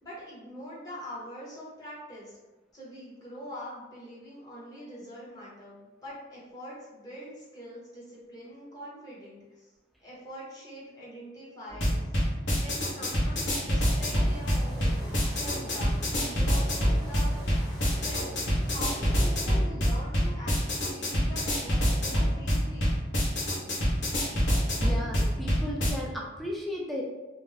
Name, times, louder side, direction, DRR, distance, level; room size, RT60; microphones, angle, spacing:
voice 1, 0.0-2.4 2.7-9.7 10.0-12.1 12.5-17.5 17.8-18.3 18.6-23.0, equal, 20° left, -7 dB, 0.8 m, -44 dB
sound 1, 11.7-25.9, equal, 70° left, 0.8 m, -26 dB
sound 2, 13.9-19.4, equal, 35° left, 1.3 m, -41 dB
voice 2, 24.8-27.0, left 1 dB, ahead, -3 dB, 0.4 m, -35 dB
2.5 x 2.0 x 3.1 m, 1.1 s
head